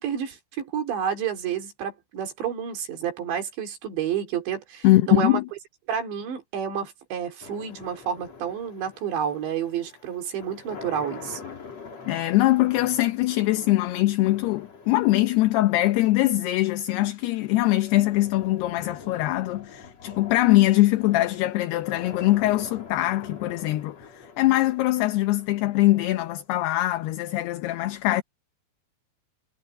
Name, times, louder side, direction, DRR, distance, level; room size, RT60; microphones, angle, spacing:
voice 1, 0.0-5.4 5.9-11.4, right 8 dB, 80° right, 5.7 m, -30 dB
voice 2, 4.8-5.4 12.1-28.2, left 17 dB, 75° left, 2.8 m, -22 dB
sound 1, 7.4-26.4, left 4 dB, 40° left, 4.7 m, -45 dB
omnidirectional pair, 5.1 m